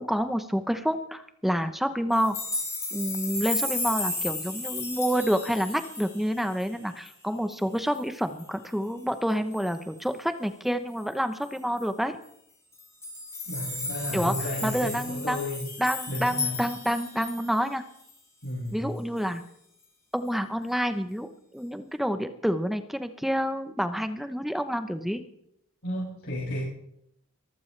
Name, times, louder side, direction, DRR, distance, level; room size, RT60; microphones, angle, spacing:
voice 1, 0.0-2.3 2.9-12.2 14.1-14.4 14.6-15.5 15.8-17.8 18.7-19.4 20.1-25.2, equal, ahead, 9 dB, 0.8 m, -28 dB
sound 1, 2.1-6.7 7.1-7.2 7.5-7.6 7.9-8.4 9.5-9.7 11.4-11.5 11.8-11.9 12.7-17.6 18.1-18.2, left 2 dB, 15° left, 3.8 m, -34 dB
voice 2, 13.5-15.6 16.1-16.6 18.4-18.9 25.8-26.6, left 1 dB, 70° left, -8 dB, 6.8 m, -33 dB
23.0 x 15.0 x 3.3 m, 0.76 s
head